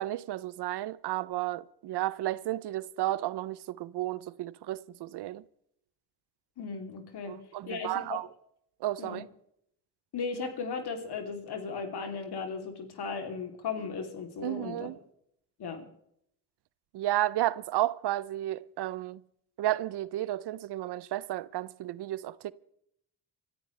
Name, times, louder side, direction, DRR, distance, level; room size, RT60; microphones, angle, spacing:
voice 1, 0.0-5.4 7.3-8.3 8.8-9.3 14.4-15.0 16.9-19.2 19.6-22.5, right 14 dB, 80° right, 0.7 m, -32 dB
voice 2, 6.6-7.4 7.7-8.2 9.0-9.2 10.1-14.9 15.6-15.9, left 5 dB, 70° left, 3.2 m, -36 dB
26.0 x 13.5 x 3.3 m
cardioid pair, 65°, 40 cm